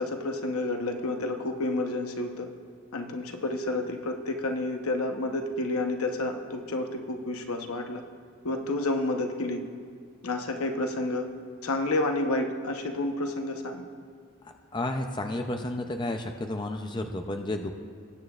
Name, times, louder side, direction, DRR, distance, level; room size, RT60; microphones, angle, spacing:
voice 1, 0.0-2.5 2.9-8.0 8.4-9.6 10.2-11.3 11.6-13.9, left 2 dB, 85° left, 5 dB, 0.9 m, -30 dB
voice 2, 14.7-17.8, left 1 dB, 20° left, 5 dB, 0.4 m, -31 dB
20.5 x 9.0 x 2.4 m, 2.3 s
head